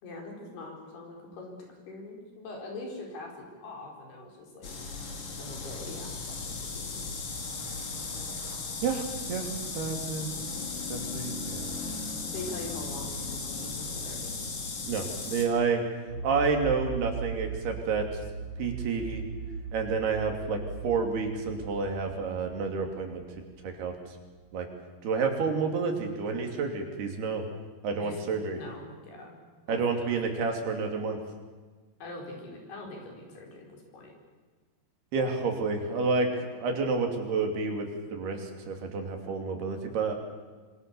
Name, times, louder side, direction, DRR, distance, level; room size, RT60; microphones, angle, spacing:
voice 1, 0.0-4.7 5.4-7.1 12.3-14.3 28.0-28.2 28.5-29.4 29.7-30.1 32.0-34.1, left 2 dB, 80° left, 1 dB, 6.9 m, -43 dB
sound 1, 4.6-15.5, left 4 dB, 40° left, 3.3 m, -36 dB
voice 2, 8.8-9.5 9.8-10.6 10.9-11.7 14.9-15.8 16.2-18.0 18.6-19.2 19.7-23.2 23.6-23.9 24.5-24.7 25.0-27.4 27.8-28.6 29.7-31.2 35.1-40.2, right 4 dB, 80° right, 3 dB, 4.9 m, -29 dB
sound 2, 16.1-24.2, right 6 dB, 55° right, 4.0 m, -39 dB
26.0 x 25.0 x 7.1 m, 1.4 s
omnidirectional pair, 4.5 m